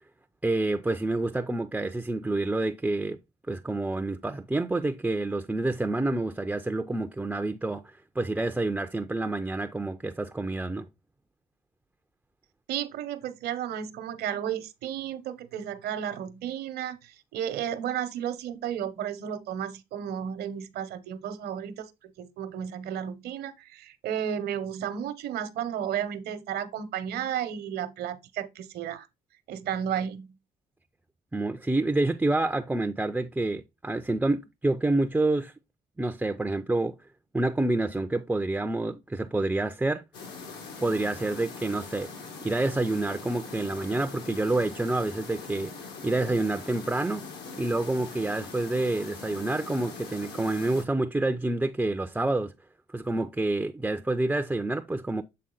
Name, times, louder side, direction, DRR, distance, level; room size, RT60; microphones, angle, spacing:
voice 1, 0.4-3.2 3.5-10.9 31.3-35.5 36.0-37.0 37.3-40.0 40.8-42.1 42.4-45.7 46.0-47.2 47.6-52.5 52.9-55.2, right 2 dB, 10° right, 0.4 m, -28 dB
voice 2, 12.7-21.9 22.2-29.1 29.5-30.4, right 9 dB, 70° right, 0.9 m, -33 dB
sound 1, 40.1-50.8, left 4 dB, 85° left, 1.9 m, -42 dB
7.6 x 3.7 x 3.8 m
cardioid pair, 110°, 17 cm